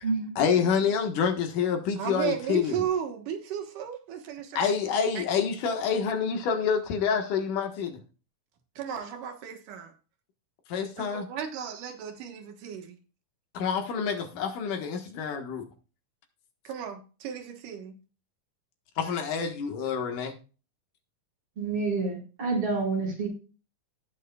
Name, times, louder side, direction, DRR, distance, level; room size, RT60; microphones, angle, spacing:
voice 1, 0.4-2.8 4.6-8.0 10.7-11.3 13.5-15.7 19.0-20.4, left 6 dB, 85° left, 3.0 m, -27 dB
voice 2, 2.0-4.7 5.1-5.2 8.8-9.9 11.0-13.0 16.6-17.9, right 9 dB, 85° right, 3.0 m, -34 dB
voice 3, 21.6-23.3, right 4 dB, 45° right, 5.5 m, -28 dB
18.0 x 6.4 x 2.3 m
omnidirectional pair, 3.6 m